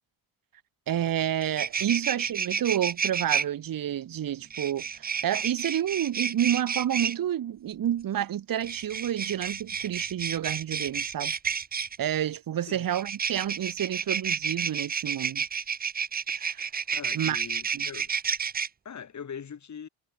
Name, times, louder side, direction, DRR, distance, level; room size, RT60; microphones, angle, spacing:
voice 1, 0.9-11.3 12.0-15.4 16.4-16.7 17.1-17.4 17.7-17.9, right 11 dB, 45° right, 1.5 m, -29 dB
sound 1, 1.0-1.1 1.4-3.4 4.5-7.1 8.6-12.0 12.9-18.7, right 6 dB, 20° right, 0.5 m, -30 dB
voice 2, 16.9-18.1 18.8-19.9, left 7 dB, 35° left, 4.9 m, -41 dB
cardioid pair, 140°, 46 cm